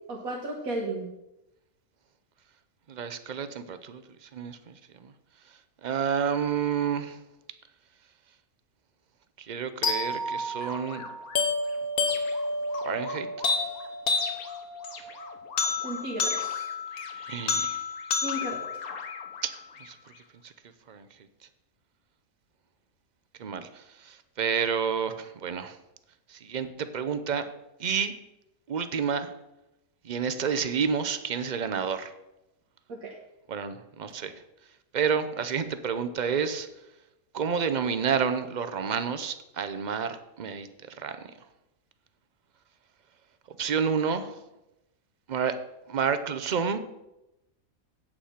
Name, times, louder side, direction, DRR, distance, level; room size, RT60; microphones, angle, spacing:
voice 1, 0.1-1.1 15.8-16.7 18.2-18.8 32.9-33.2, right 1 dB, 80° right, -2 dB, 1.7 m, -34 dB
voice 2, 2.9-4.7 5.0-5.1 5.8-7.2 9.4-11.0 12.8-13.3 17.2-17.8 19.4-19.5 19.8-20.0 20.4-20.5 20.9-21.1 23.4-25.8 26.3-27.4 27.8-28.1 28.7-29.3 30.0-32.1 33.5-34.3 34.9-36.7 37.3-41.3 43.6-44.4 45.3-45.5 45.9-46.8, right 6 dB, 45° right, 9 dB, 0.6 m, -29 dB
sound 1, 9.8-19.9, left 4 dB, 85° left, 1.6 m, -30 dB
8.8 x 8.3 x 5.8 m, 0.93 s
omnidirectional pair, 1.5 m